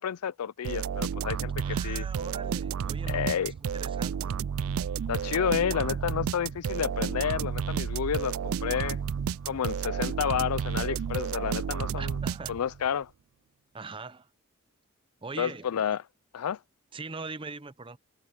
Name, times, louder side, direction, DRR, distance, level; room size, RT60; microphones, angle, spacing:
voice 1, 0.0-2.0 3.1-3.5 5.1-9.0 9.4-12.1 12.5-13.1 15.4-16.0 16.3-16.6, left 8 dB, 90° left, 0.4 m, -30 dB
sound 1, 0.6-12.9, right 7 dB, 70° right, 0.4 m, -31 dB
voice 2, 1.6-4.3 12.0-12.5 13.7-14.3 15.2-15.9 16.9-18.0, right 3 dB, 25° right, 0.6 m, -41 dB
Wind, 5.2-13.1, equal, 20° left, 5.2 m, -66 dB
head